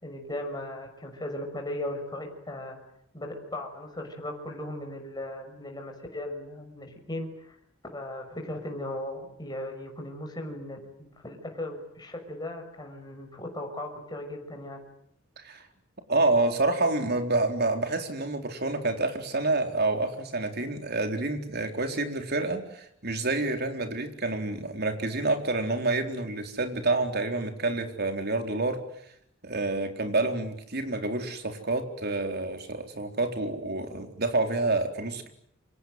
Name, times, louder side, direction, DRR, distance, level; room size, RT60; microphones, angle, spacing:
voice 1, 0.0-2.8 3.1-7.6 7.9-14.8, left 1 dB, 20° left, 2 dB, 6.2 m, -37 dB
voice 2, 16.1-28.8 29.4-35.3, right 2 dB, 50° right, 6 dB, 4.2 m, -28 dB
29.0 x 25.5 x 7.9 m, 0.72 s
head